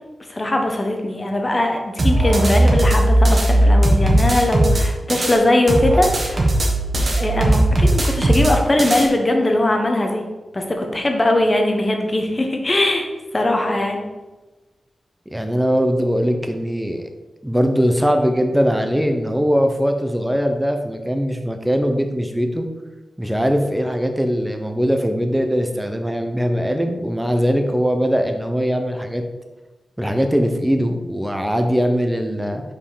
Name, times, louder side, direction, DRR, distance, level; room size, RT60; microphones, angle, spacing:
voice 1, 0.3-6.5 7.1-10.2 10.5-13.1 13.3-14.0, left 1 dB, 25° left, 3 dB, 1.1 m, -20 dB
sound 1, 2.0-5.4 5.7-9.1, right 1 dB, 35° right, 1.3 m, -17 dB
voice 2, 15.3-17.1 17.4-22.7 23.2-29.2 30.0-32.6, equal, 5° right, 5 dB, 0.8 m, -20 dB
5.5 x 5.2 x 4.9 m, 1.2 s
wide cardioid pair, 115°, 0 cm